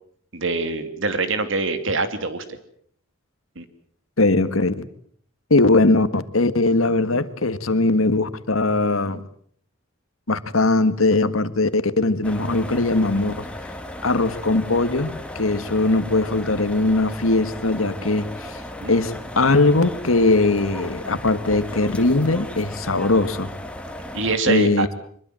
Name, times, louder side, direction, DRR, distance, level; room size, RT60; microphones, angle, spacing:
voice 1, 0.3-2.4 3.6-3.7 18.8-18.9 24.1-24.9, right 3 dB, 65° right, 2.8 m, -24 dB
voice 2, 4.2-4.7 5.5-9.2 10.3-13.3 14.0-18.6 18.9-23.5 24.5-24.9, left 2 dB, 80° left, 1.7 m, -20 dB
sound 1, 12.2-24.4, left 1 dB, 5° left, 2.2 m, -35 dB
24.5 x 22.0 x 7.7 m
head